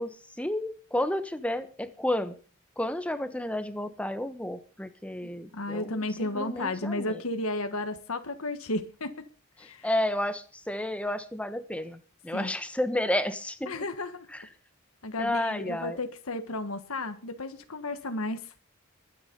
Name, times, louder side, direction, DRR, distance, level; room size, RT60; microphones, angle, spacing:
voice 1, 0.0-2.3 2.8-7.2 9.8-13.7 14.3-14.4 15.2-16.0, left 1 dB, 5° left, 1.3 m, -31 dB
voice 2, 5.5-9.3 9.6-9.9 12.3-12.5 13.7-14.3 15.0-18.5, left 2 dB, 70° left, 1.5 m, -33 dB
22.0 x 9.8 x 5.4 m
head